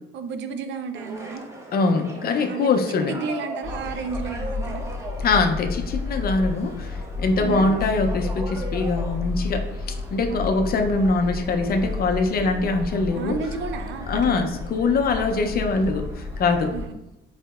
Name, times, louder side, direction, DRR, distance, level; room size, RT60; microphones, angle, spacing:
voice 1, 0.1-1.5 2.5-4.8 7.4-7.6 10.3-10.6 13.2-14.5 15.0-15.4 16.7-16.9, right 5 dB, 70° right, 9 dB, 0.4 m, -32 dB
sound 1, 0.9-16.7, right 1 dB, 15° right, 0.6 m, -40 dB
voice 2, 1.7-3.1 5.2-13.4 14.1-16.7, left 3 dB, 50° left, 5 dB, 0.4 m, -23 dB
sound 2, 3.6-16.9, left 3 dB, 10° left, 1.0 m, -32 dB
4.1 x 2.7 x 2.3 m, 0.94 s
cardioid pair, 90°, 20 cm